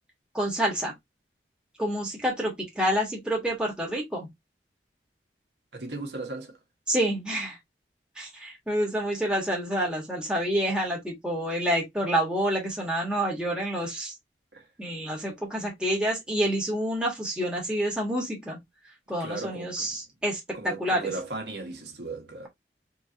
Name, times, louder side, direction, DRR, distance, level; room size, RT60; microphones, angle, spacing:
voice 1, 0.3-0.9 1.8-4.3 6.9-7.6 8.2-14.1 14.8-18.6 19.1-21.1, right 1 dB, 5° right, 1.6 m, -28 dB
voice 2, 5.7-6.5 14.5-14.6 19.2-20.0 20.5-22.5, right 3 dB, 80° right, 1.6 m, -36 dB
4.5 x 3.1 x 2.8 m
head